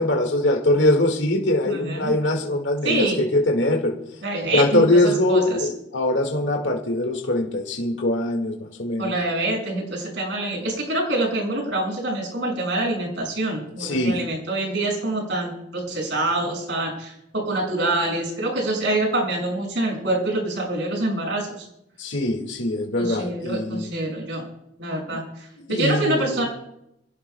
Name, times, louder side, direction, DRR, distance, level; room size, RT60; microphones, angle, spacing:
voice 1, 0.0-4.0 4.5-9.2 13.8-14.2 22.0-23.9 25.6-26.4, left 1 dB, 75° left, 2 dB, 1.9 m, -22 dB
voice 2, 1.7-2.1 2.8-3.2 4.2-5.6 9.0-21.7 23.0-24.5 24.8-26.5, right 2 dB, 70° right, 0 dB, 6.3 m, -26 dB
27.0 x 17.0 x 2.3 m, 0.82 s
head